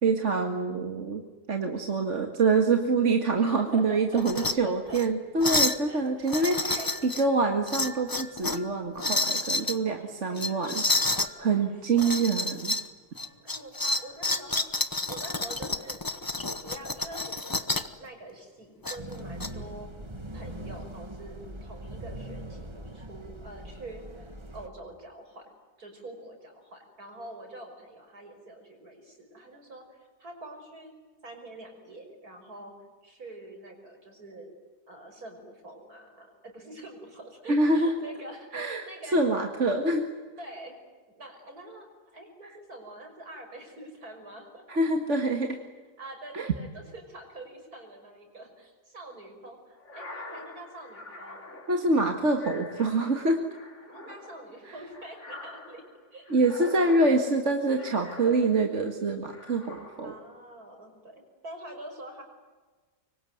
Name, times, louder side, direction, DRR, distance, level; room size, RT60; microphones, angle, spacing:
voice 1, 0.0-1.2 1.5-10.8 11.2-12.8 37.5-37.9 38.5-40.0 44.7-45.6 46.3-46.5 51.7-53.4 56.3-60.1, right 3 dB, 45° right, 5 dB, 2.2 m, -26 dB
voice 2, 3.4-5.0 5.8-6.3 6.8-6.9 9.8-10.8 11.3-11.7 12.0-12.3 13.1-16.0 16.6-19.9 20.3-24.2 24.5-25.5 25.8-30.9 31.2-32.7 33.0-34.5 34.9-39.2 40.4-40.8 41.1-44.6 46.0-51.4 53.9-55.8 56.1-56.3 60.0-62.2, right 1 dB, 65° right, 4 dB, 6.4 m, -45 dB
sound 1, 4.2-4.5 4.9-5.1 5.4-5.8 6.3-7.2 7.7-8.6 9.0-9.8 10.4-11.3 12.0-12.9 13.2-17.9 18.8-19.5, left 2 dB, 15° left, 0.9 m, -29 dB
sound 2, 19.0-24.7, right 1 dB, 20° right, 1.6 m, -41 dB
sound 3, 49.8-58.9 59.3-60.3, left 1 dB, 45° left, 3.2 m, -45 dB
25.5 x 24.0 x 9.4 m, 1.3 s
omnidirectional pair, 1.7 m